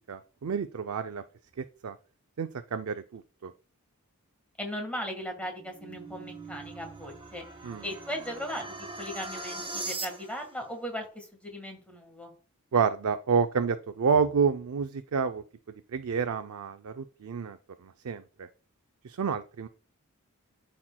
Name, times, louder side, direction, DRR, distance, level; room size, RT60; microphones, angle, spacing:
voice 1, 0.1-1.2 1.8-2.0 2.4-3.5 7.6-7.8 12.7-15.4 15.9-17.6 17.8-18.5 19.0-19.7, right 6 dB, 70° right, 8 dB, 0.4 m, -29 dB
voice 2, 4.6-7.4 7.8-12.3, equal, 5° left, 3 dB, 1.5 m, -38 dB
sound 1, 5.4-10.5, right 3 dB, 25° right, 1.0 m, -40 dB
12.5 x 4.4 x 2.2 m, 0.38 s
head